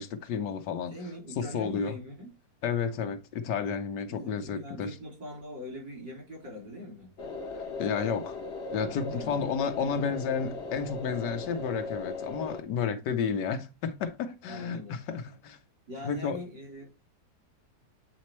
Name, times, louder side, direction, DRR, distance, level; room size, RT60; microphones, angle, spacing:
voice 1, 0.0-0.9 1.4-2.0 2.6-5.0 7.8-8.4 8.7-15.6 16.0-16.4, left 6 dB, 75° left, 1.4 m, -31 dB
voice 2, 0.9-2.3 4.1-7.1 9.1-9.4 13.0-13.1 14.5-15.0 15.9-16.9, left 1 dB, 75° right, 4.0 m, -42 dB
sound 1, 7.2-12.6, left 3 dB, 45° left, 1.0 m, -38 dB
8.6 x 4.2 x 3.0 m
omnidirectional pair, 1.9 m